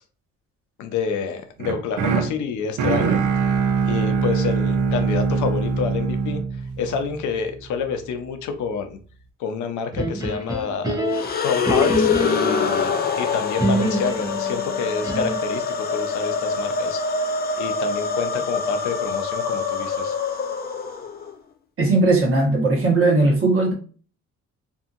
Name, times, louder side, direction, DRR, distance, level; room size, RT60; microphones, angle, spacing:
voice 1, 0.8-3.2 3.9-6.4 6.8-9.0 9.4-11.0 11.4-17.2 17.6-20.2, left 6 dB, 75° left, 0.6 m, -28 dB
sound 1, 1.6-7.7, right 5 dB, 80° right, 0.6 m, -23 dB
sound 2, 9.9-12.7 13.6-15.6, right 1 dB, 10° right, 0.7 m, -26 dB
sound 3, 11.1-21.3, left 5 dB, 35° left, 0.4 m, -25 dB
voice 2, 21.8-23.7, right 2 dB, 45° right, 1.2 m, -18 dB
2.7 x 2.6 x 2.5 m
cardioid pair, 90°, 30 cm